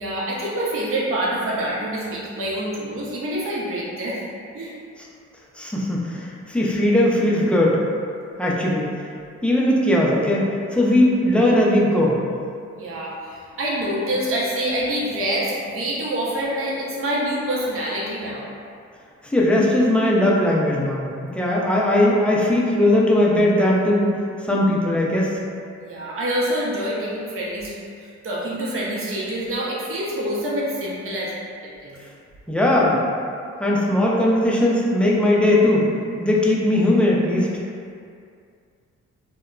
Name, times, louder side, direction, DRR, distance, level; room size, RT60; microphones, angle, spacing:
voice 1, 0.0-4.2 4.5-4.8 12.8-18.5 25.8-27.7 28.0-31.3 31.8-31.9, right 1 dB, 50° right, -6 dB, 0.7 m, -26 dB
voice 2, 5.6-7.9 8.4-8.9 9.4-10.4 10.7-12.2 19.2-21.1 21.3-24.1 24.4-25.3 32.5-33.0 33.6-35.9 36.2-37.5, left 1 dB, 5° left, -5 dB, 0.5 m, -19 dB
2.2 x 2.0 x 3.7 m, 2.3 s
cardioid pair, 80°, 29 cm